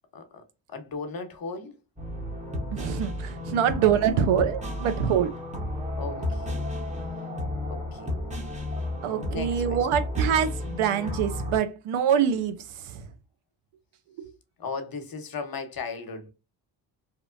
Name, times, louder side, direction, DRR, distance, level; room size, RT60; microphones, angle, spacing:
voice 1, 0.1-1.8 5.9-6.5 7.7-8.1 9.3-9.9 14.6-16.3, left 4 dB, 50° left, 0.9 m, -37 dB
sound 1, 2.0-11.6, left 1 dB, 15° right, 0.9 m, -32 dB
voice 2, 2.7-5.3 9.0-13.0 14.2-14.3, right 8 dB, 90° right, 0.6 m, -25 dB
2.9 x 2.1 x 2.4 m
cardioid pair, 70°, 47 cm